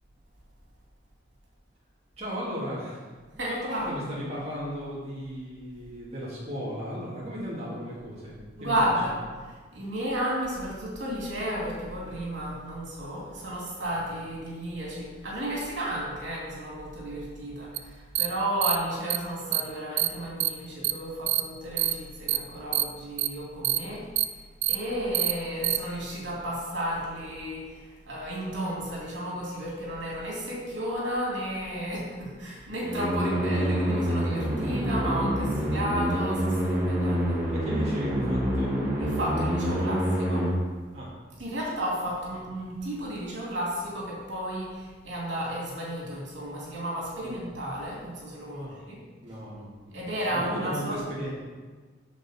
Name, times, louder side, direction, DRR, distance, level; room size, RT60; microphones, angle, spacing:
voice 1, 2.2-3.1 3.5-8.9 37.5-38.8 40.9-41.1 47.2-47.4 48.5-48.7 49.2-51.3, equal, 35° right, -7 dB, 2.2 m, -36 dB
voice 2, 3.4-4.0 8.6-9.2 9.7-24.4 24.7-37.4 39.0-40.5 41.4-49.0 49.9-51.0, right 1 dB, 80° right, -4 dB, 2.6 m, -33 dB
sound 1, 17.8-17.9 18.1-18.3 18.6-18.7 19.1-19.2 19.5-19.6 20.0-20.1 20.4-20.5 20.8-20.9 21.3-21.4 21.8-21.9 22.3-22.4 22.7-22.8 23.2-23.3 23.6-23.8 24.2-24.3 24.6-24.7 25.1-25.3 25.6-25.8, right 15 dB, 65° right, 0.3 m, -24 dB
sound 2, 32.8-40.5, equal, 10° right, 1.8 m, -27 dB
8.1 x 6.7 x 4.3 m, 1.4 s
head